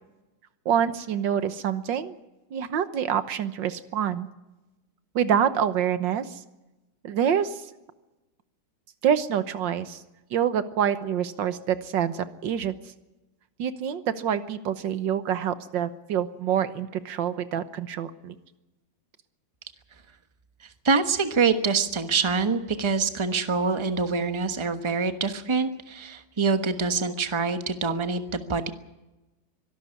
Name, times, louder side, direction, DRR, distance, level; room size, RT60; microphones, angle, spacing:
voice 1, 0.7-2.2 2.5-4.3 5.2-6.4 7.0-7.7 9.0-10.0 10.3-12.8 13.6-18.4, right 8 dB, 90° right, 12 dB, 1.8 m, -26 dB
voice 2, 20.8-28.7, right 4 dB, 20° right, 9 dB, 1.1 m, -25 dB
24.0 x 12.5 x 9.7 m, 1.0 s
omnidirectional pair, 1.9 m